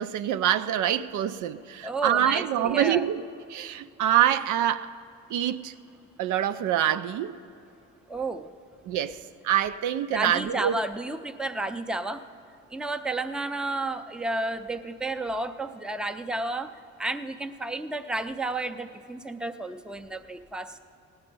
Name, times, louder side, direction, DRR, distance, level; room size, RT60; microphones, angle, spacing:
voice 1, 0.0-3.2 3.5-4.9 5.3-5.7 6.2-7.4 8.9-10.8, right 10 dB, 80° right, 0.5 m, -25 dB
voice 2, 1.8-3.0 8.1-8.5 10.1-12.2 12.7-16.7 17.0-20.8, right 2 dB, 5° right, 0.5 m, -32 dB
17.0 x 9.6 x 5.3 m
cardioid pair, 90°, 30 cm